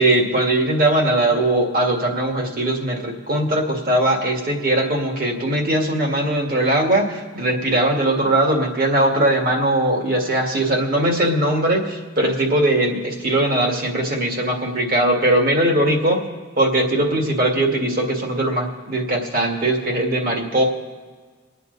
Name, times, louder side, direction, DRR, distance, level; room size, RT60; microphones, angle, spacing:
voice 1, 0.0-16.2 16.6-20.6, right 1 dB, 45° right, 2 dB, 2.0 m, -20 dB
24.5 x 9.0 x 4.0 m, 1.5 s
head